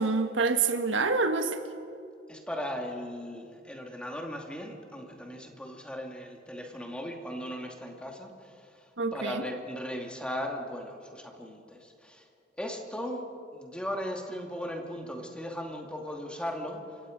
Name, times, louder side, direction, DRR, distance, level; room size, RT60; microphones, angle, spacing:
voice 1, 0.0-1.6 9.0-9.4, right 4 dB, 80° right, 7 dB, 1.5 m, -27 dB
voice 2, 2.3-12.3 12.6-13.3 13.5-17.0, equal, 5° left, 1 dB, 2.5 m, -37 dB
28.0 x 24.5 x 5.3 m, 2.5 s
head